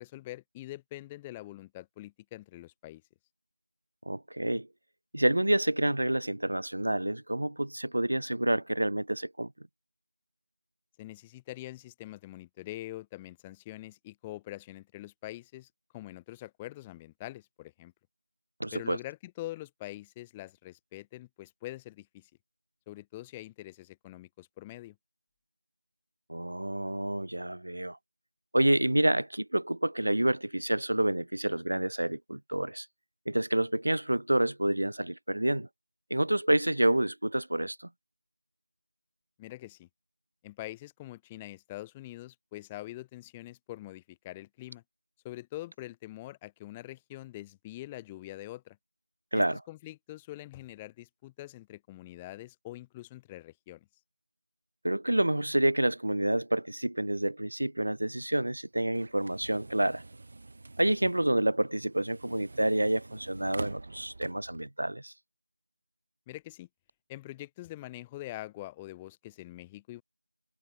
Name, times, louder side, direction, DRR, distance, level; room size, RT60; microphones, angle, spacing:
voice 1, 0.0-3.0 11.0-17.9 18.7-22.3 22.9-25.0 39.4-39.9 40.4-44.8 45.2-48.8 49.3-53.9 61.0-61.1 66.3-66.7 67.1-70.0, left 16 dB, 10° left, 0.4 m, -44 dB
voice 2, 4.1-4.7 5.1-9.5 18.6-19.0 26.3-28.0 28.5-32.9 33.3-35.7 36.1-37.9 49.3-49.6 54.8-60.0 60.8-65.1, right 1 dB, 70° right, 1.0 m, -28 dB
sound 1, 58.1-64.7, right 2 dB, 40° right, 7.2 m, -46 dB
figure-of-eight pair, 170°, 0 cm